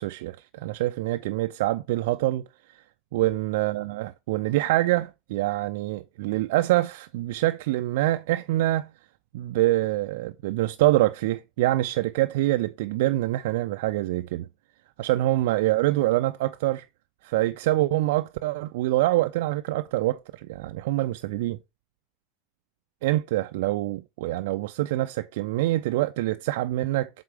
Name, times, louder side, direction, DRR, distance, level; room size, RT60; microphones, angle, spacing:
voice 1, 0.0-2.4 2.7-2.8 3.1-8.9 9.3-14.5 15.0-16.8 17.2-21.6 23.0-27.1, right 16 dB, 60° right, 0.3 m, -25 dB
7.7 x 3.7 x 4.8 m
figure-of-eight pair, 80°, 0 cm